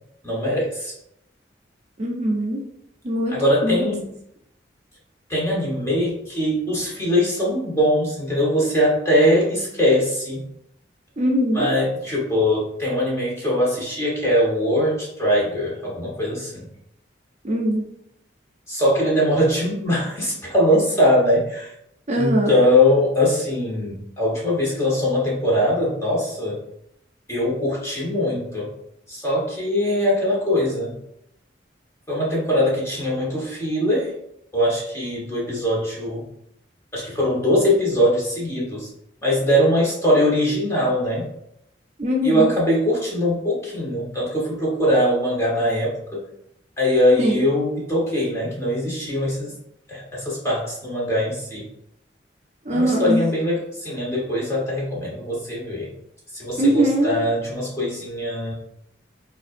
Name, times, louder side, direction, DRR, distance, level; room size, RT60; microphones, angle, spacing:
voice 1, 0.2-0.9 3.3-4.1 5.3-10.4 11.5-16.7 18.7-21.7 22.2-26.6 27.3-28.7 29.1-31.0 32.1-34.1 34.5-36.3 36.9-38.9 39.2-41.3 42.2-46.2 46.8-49.6 49.9-51.7 52.7-55.9 56.3-58.5, left 1 dB, 15° left, -5 dB, 1.2 m, -21 dB
voice 2, 2.0-2.6 3.0-3.4 3.6-3.8 11.2-11.7 17.4-17.8 22.1-22.5 42.0-42.5 47.2-47.4 52.7-53.3 56.6-57.1, equal, 35° right, 0 dB, 0.5 m, -21 dB
5.1 x 2.5 x 2.5 m, 0.77 s
head